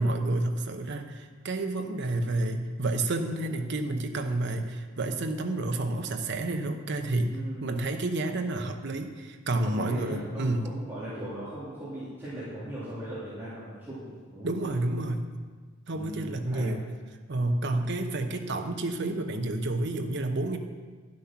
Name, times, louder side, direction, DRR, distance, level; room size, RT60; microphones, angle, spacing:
voice 1, 0.0-10.7 14.4-15.3 15.9-16.8 17.3-20.6, right 2 dB, 55° right, 5 dB, 0.9 m, -30 dB
voice 2, 7.3-7.8 9.6-14.7 15.9-16.7, equal, 10° right, -11 dB, 2.6 m, -39 dB
11.0 x 7.8 x 5.8 m, 1.5 s
head